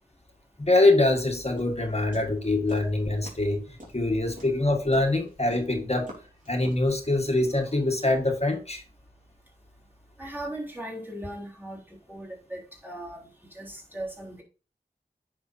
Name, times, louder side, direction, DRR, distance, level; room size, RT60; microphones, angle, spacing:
voice 1, 0.6-6.1 6.5-8.8, left 2 dB, 40° left, 1.7 m, -24 dB
sound 1, 1.6-2.9 3.2-3.5 3.8-6.9, equal, 50° right, 3.5 m, -45 dB
voice 2, 10.2-11.8 12.1-13.3 13.5-14.4, right 1 dB, 10° right, 3.7 m, -38 dB
9.3 x 6.0 x 2.7 m
wide cardioid pair, 45°, 17 cm